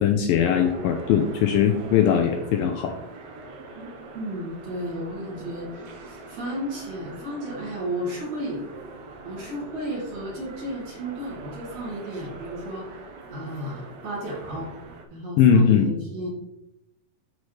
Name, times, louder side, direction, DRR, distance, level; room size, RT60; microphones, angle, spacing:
voice 1, 0.0-3.0 15.4-15.9, left 8 dB, 80° left, 4 dB, 2.1 m, -20 dB
sound 1, 0.6-15.0, right 3 dB, 70° right, 1.7 m, -42 dB
voice 2, 4.1-8.6 9.2-13.0 13.3-14.7 15.1-16.3, equal, 45° right, -5 dB, 2.8 m, -33 dB
12.5 x 4.8 x 3.2 m, 0.87 s
omnidirectional pair, 4.5 m